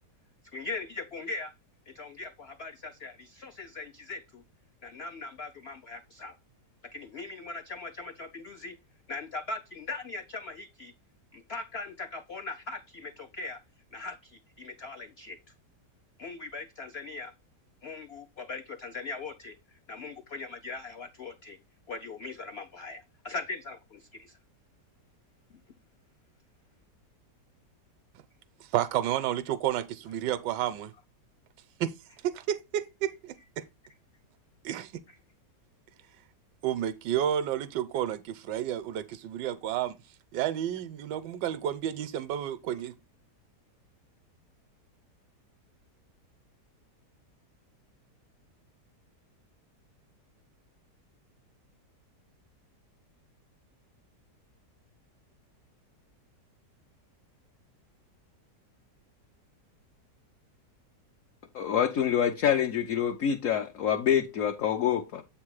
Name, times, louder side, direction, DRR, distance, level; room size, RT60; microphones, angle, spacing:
voice 1, 0.4-1.5 1.9-4.4 4.8-6.3 6.8-8.8 9.1-10.9 11.3-13.6 13.9-15.4 16.2-17.3 17.8-21.6 21.9-24.4, left 3 dB, 80° left, 0.5 m, -40 dB
voice 2, 28.6-30.9 31.8-32.0 32.2-33.7 34.6-35.0 36.6-39.9 40.3-42.9, right 11 dB, 85° right, 1.2 m, -31 dB
voice 3, 61.5-65.2, left 9 dB, 60° left, 0.9 m, -26 dB
8.0 x 3.6 x 4.7 m
omnidirectional pair, 1.8 m